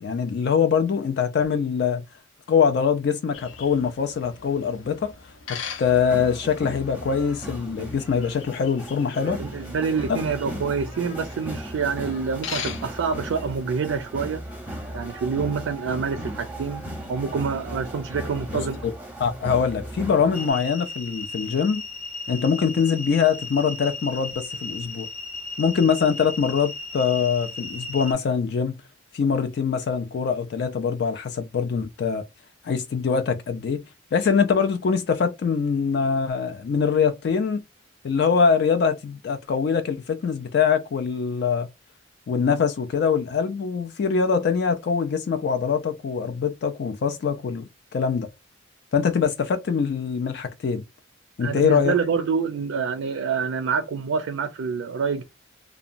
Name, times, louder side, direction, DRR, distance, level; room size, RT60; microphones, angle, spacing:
voice 1, 0.0-2.0 2.5-5.1 5.5-9.4 10.1-10.2 18.8-18.9 19.2-21.8 22.3-25.1 25.6-28.8 29.1-32.2 32.6-33.8 34.1-37.6 38.0-41.7 42.3-48.3 48.9-50.8 51.4-51.9, left 6 dB, 55° left, 0.3 m, -23 dB
sound 1, 3.3-13.6, left 7 dB, 85° left, 0.7 m, -41 dB
sound 2, 5.8-20.5, right 1 dB, 10° right, 0.7 m, -36 dB
voice 2, 9.2-14.4 14.9-18.8 51.4-55.2, right 5 dB, 85° right, 0.4 m, -27 dB
sound 3, 20.3-28.1, left 3 dB, 40° left, 0.7 m, -35 dB
2.8 x 2.2 x 2.5 m
head